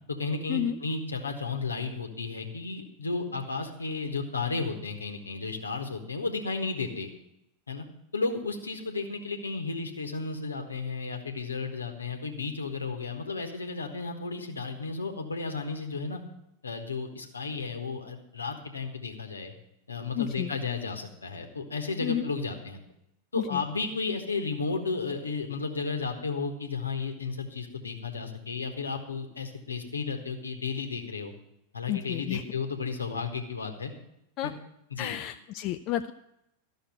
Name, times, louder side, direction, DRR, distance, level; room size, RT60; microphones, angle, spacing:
voice 1, 0.2-7.1 7.7-7.9 8.1-16.2 16.6-19.5 19.9-22.8 23.3-31.3 31.7-33.9 34.9-35.2, left 4 dB, 75° left, 5 dB, 1.3 m, -33 dB
voice 2, 20.2-20.5 22.0-22.3 23.4-23.6 31.9-32.4 34.4-34.5 35.0-36.1, left 12 dB, 40° left, 9 dB, 0.4 m, -31 dB
13.0 x 6.3 x 7.5 m, 0.84 s
figure-of-eight pair, 90°, 0 cm